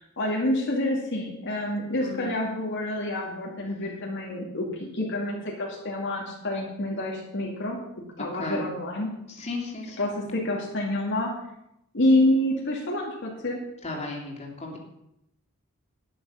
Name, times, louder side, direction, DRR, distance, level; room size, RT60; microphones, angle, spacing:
voice 1, 0.0-7.8 8.2-9.1 10.0-11.4 11.9-13.6, left 1 dB, 60° left, -2 dB, 2.3 m, -27 dB
voice 2, 2.0-2.3 8.2-8.6 9.3-10.1 13.8-14.8, left 2 dB, 30° left, -1 dB, 3.0 m, -35 dB
11.5 x 10.5 x 5.6 m, 0.82 s
head